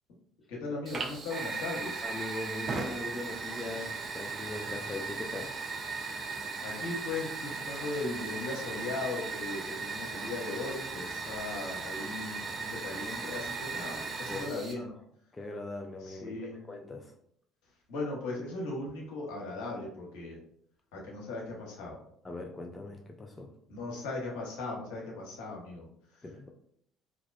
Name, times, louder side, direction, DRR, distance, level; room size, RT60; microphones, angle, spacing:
voice 1, 0.5-2.0 6.6-14.9 16.0-16.6 17.9-20.4 20.9-22.0 23.7-26.5, left 3 dB, 70° left, -2 dB, 0.8 m, -38 dB
Fire, 0.9-14.7, right 4 dB, 40° right, 0.5 m, -37 dB
voice 2, 2.0-5.5 14.3-14.9 15.3-17.1 22.2-23.5 26.2-26.5, left 2 dB, 25° left, 2 dB, 0.3 m, -40 dB
2.4 x 2.1 x 2.4 m, 0.68 s
hypercardioid pair, 55°, 0 cm